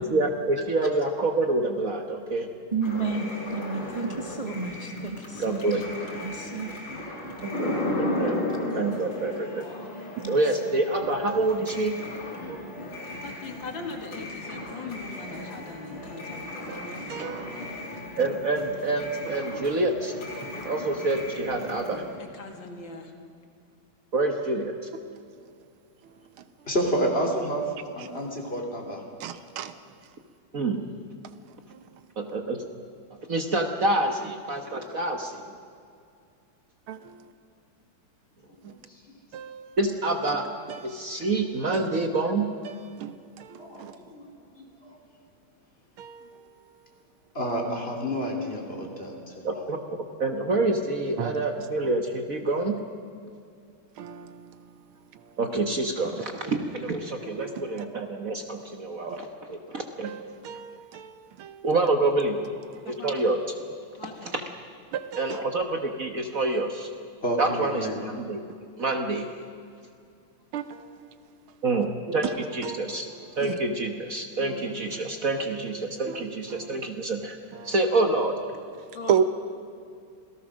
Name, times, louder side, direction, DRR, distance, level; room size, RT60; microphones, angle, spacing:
voice 1, 0.1-2.5 5.4-5.8 7.4-7.7 8.0-9.7 10.3-12.0 18.2-20.1 20.6-22.0 24.1-24.7 30.5-30.8 32.2-32.6 33.3-35.3 38.6-38.7 39.8-40.5 40.8-42.5 49.4-49.8 50.2-52.8 55.4-60.1 61.6-62.4 62.8-63.4 64.2-64.4 65.2-66.9 67.4-68.4 68.8-69.3 71.6-73.1 73.4-77.4 77.6-78.3, right 2 dB, 45° right, 4 dB, 1.5 m, -27 dB
voice 2, 2.7-5.8 6.2-6.7 8.9-9.0 10.2-10.3, right 4 dB, 20° right, 2 dB, 1.4 m, -31 dB
sound 1, 2.8-22.2, left 1 dB, 85° left, 5.0 m, -35 dB
voice 3, 13.1-17.4 22.2-23.1 46.2-46.3 56.6-57.0 62.8-63.2 63.9-64.3 74.4-74.8 78.9-79.2, left 3 dB, 65° left, 4 dB, 2.7 m, -40 dB
voice 4, 16.7-17.8 19.3-19.4 25.0-25.3 26.0-26.2 26.6-26.7 28.0-28.1 29.2-29.8 31.2-31.4 31.7-31.8 36.9-37.1 39.3-39.8 40.7-41.0 41.7-41.9 42.7-44.0 46.0-46.6 48.8-49.0 51.2-51.4 54.0-54.9 55.1-55.4 57.2-57.9 59.1-59.2 60.0-61.7 62.8-62.9 64.9-65.4 70.5-71.3 72.1-73.6 74.5-74.6 76.1-76.9 77.5-77.7 78.8-79.2, right 8 dB, 85° right, 11 dB, 1.8 m, -35 dB
voice 5, 26.7-27.6 27.9-29.0 43.6-44.2 44.8-45.0 47.3-49.4 67.2-68.0, equal, 30° left, 0 dB, 3.4 m, -29 dB
27.5 x 17.5 x 6.4 m, 2.4 s
omnidirectional pair, 2.3 m